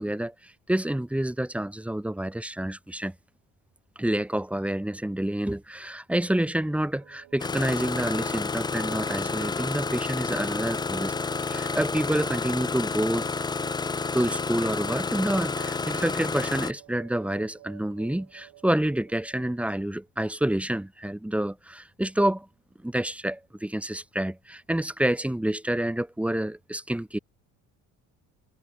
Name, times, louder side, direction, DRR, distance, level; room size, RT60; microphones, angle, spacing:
voice 1, 0.0-3.1 4.0-11.1 11.4-13.3 14.1-22.5 22.8-27.2, right 1 dB, 5° right, 1.6 m, -28 dB
sound 1, 6.9-19.8, right 17 dB, 80° right, 6.5 m, -51 dB
Engine starting, 7.4-16.7, left 4 dB, 15° left, 0.5 m, -30 dB
cardioid pair, 125°, 33 cm